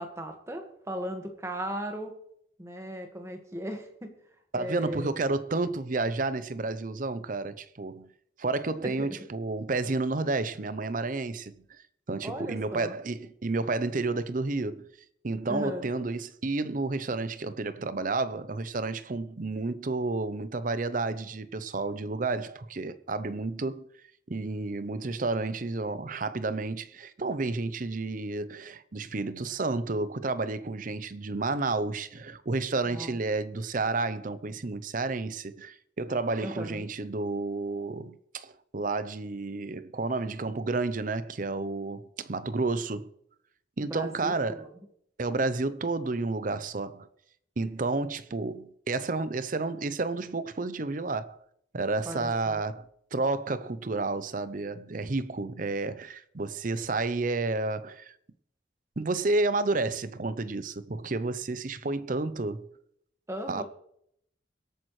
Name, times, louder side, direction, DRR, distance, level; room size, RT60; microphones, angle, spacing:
voice 1, 0.0-2.2 2.6-4.1 4.5-5.2 8.8-9.1 12.2-12.9 15.5-15.9 32.8-33.2 36.4-36.9 43.8-44.7 52.0-52.6 63.3-63.6, equal, 15° right, 1.6 m, -37 dB
voice 2, 4.5-8.1 8.4-11.6 12.1-14.9 15.2-23.8 24.3-43.1 43.8-44.7 45.2-47.1 47.6-51.4 51.7-58.1 59.0-62.7 63.5-63.6, right 3 dB, 45° right, 0.7 m, -31 dB
24.0 x 8.8 x 3.2 m
head